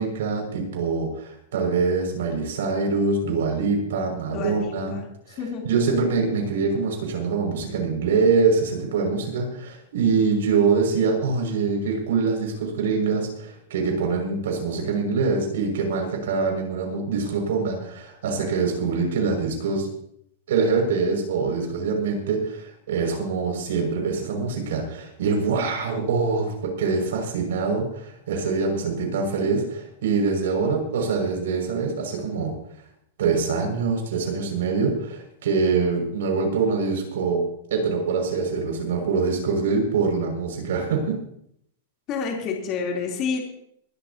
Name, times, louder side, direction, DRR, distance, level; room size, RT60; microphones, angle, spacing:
voice 1, 0.0-4.9 5.3-5.4 5.6-19.9 20.5-32.5 33.2-37.4 37.7-41.2, right 4 dB, 80° right, 1 dB, 6.4 m, -24 dB
voice 2, 4.3-5.0 5.4-5.6 42.1-43.4, left 5 dB, 30° left, -1 dB, 3.5 m, -28 dB
23.5 x 13.0 x 3.0 m, 0.71 s
supercardioid pair, 165°, 0 cm